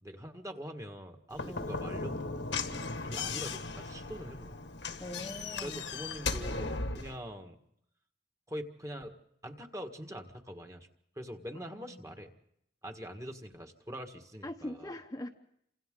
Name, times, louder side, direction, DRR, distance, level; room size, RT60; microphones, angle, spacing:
voice 1, 0.0-2.5 2.9-4.7 5.6-7.6 8.5-9.1 9.4-10.9 11.1-12.3 12.8-14.9, equal, 15° right, 4 dB, 1.7 m, -44 dB
Slam / Knock, 1.3-7.2, left 4 dB, 70° left, 1.6 m, -37 dB
voice 2, 1.4-1.7 5.0-5.9 11.5-12.1 14.4-15.3, left 1 dB, 20° left, 3 dB, 1.0 m, -42 dB
29.5 x 26.5 x 3.8 m, 0.75 s
head